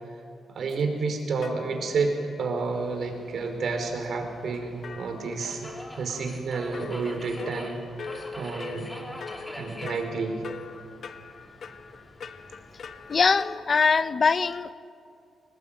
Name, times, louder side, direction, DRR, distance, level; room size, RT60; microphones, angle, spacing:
voice 1, 0.5-8.9 9.6-10.4, right 4 dB, 60° right, 4 dB, 4.9 m, -30 dB
sound 1, 0.7-0.8 1.4-2.2 2.6-2.7 4.5-6.1 6.7-13.6, left 5 dB, 55° left, 1.2 m, -43 dB
Subway metro underground, 2.7-13.3, equal, 10° left, 3.8 m, -44 dB
voice 2, 13.1-14.7, left 5 dB, 40° left, 13 dB, 0.7 m, -22 dB
26.0 x 20.5 x 9.0 m, 2.4 s
cardioid pair, 125°, 0 cm